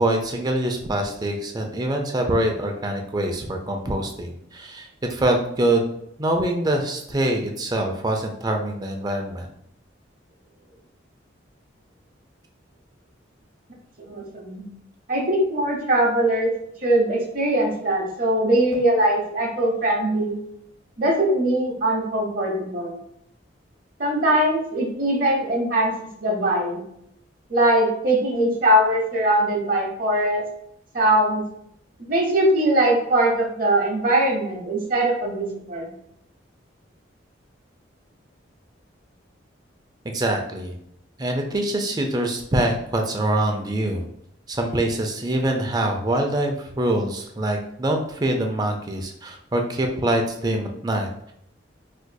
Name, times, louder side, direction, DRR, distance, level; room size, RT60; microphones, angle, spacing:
voice 1, 0.0-5.9 6.2-9.5 40.0-40.7 41.2-44.0 44.5-51.3, right 1 dB, 20° right, 2 dB, 0.4 m, -24 dB
voice 2, 14.0-14.6 15.1-16.5 16.8-20.4 21.0-22.9 24.0-25.9 26.2-26.8 27.5-30.4 30.9-31.4 32.1-35.9, right 1 dB, 45° right, -1 dB, 0.8 m, -21 dB
4.4 x 2.6 x 2.2 m, 0.74 s
head